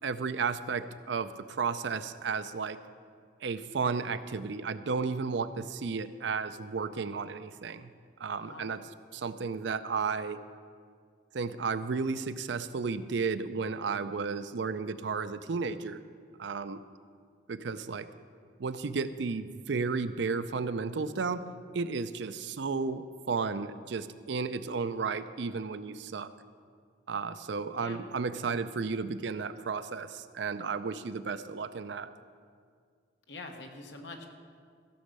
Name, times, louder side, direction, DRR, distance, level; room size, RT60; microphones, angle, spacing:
voice 1, 0.0-2.8 3.4-7.9 8.2-8.9 9.1-10.4 11.3-16.0 16.4-16.8 17.5-18.1 18.6-21.4 21.7-26.3 27.1-32.1, right 5 dB, 75° right, 12 dB, 0.5 m, -33 dB
voice 2, 8.4-8.9 27.7-28.1 33.3-34.3, left 2 dB, 75° left, 3 dB, 1.3 m, -45 dB
14.5 x 6.3 x 6.7 m, 2.1 s
head